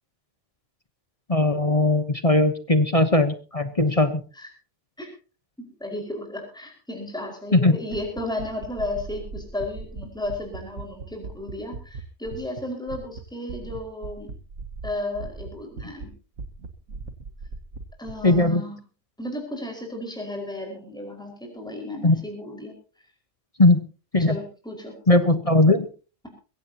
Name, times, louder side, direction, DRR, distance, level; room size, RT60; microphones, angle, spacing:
voice 1, 1.3-4.1 7.5-7.8 18.2-18.6 22.0-22.2 23.6-23.8 24.1-24.4 25.1-25.9, left 2 dB, 25° left, 10 dB, 1.1 m, -19 dB
voice 2, 5.6-14.3 14.8-16.1 18.0-18.7 19.2-22.7 24.2-24.9, left 1 dB, 5° left, 1 dB, 5.1 m, -34 dB
sound 1, 7.9-12.6 12.9-13.2 13.5-16.1 16.4-18.4, right 3 dB, 60° right, 1.8 m, -37 dB
22.0 x 16.5 x 2.9 m, 0.35 s
omnidirectional pair, 1.5 m